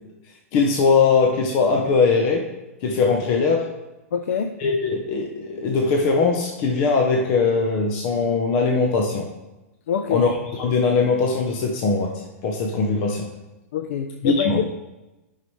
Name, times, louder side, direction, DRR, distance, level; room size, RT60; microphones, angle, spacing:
voice 1, 0.5-2.4 2.8-3.7 4.6-9.3 10.1-13.3 14.2-14.6, left 4 dB, 30° left, 1 dB, 0.7 m, -20 dB
voice 2, 4.1-4.5 9.9-10.3 13.7-14.5, left 7 dB, 65° left, 7 dB, 0.5 m, -25 dB
13.0 x 5.7 x 3.2 m, 1.0 s
supercardioid pair, 170°, 8 cm